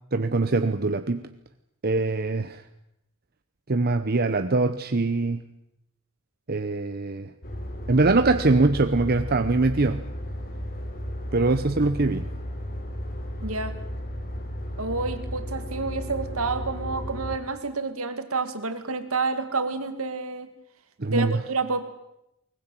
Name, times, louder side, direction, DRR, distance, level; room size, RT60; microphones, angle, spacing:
voice 1, 0.1-1.2 1.8-2.6 3.7-5.4 6.5-7.3 7.9-10.0 11.3-12.3 21.0-21.4, right 3 dB, 45° right, 8 dB, 0.8 m, -23 dB
sound 1, 7.4-17.4, equal, 45° left, 3.5 m, -34 dB
voice 2, 13.4-13.8 14.8-20.5 21.1-21.9, right 3 dB, 70° right, 8 dB, 2.4 m, -29 dB
22.0 x 20.0 x 9.2 m, 0.83 s
head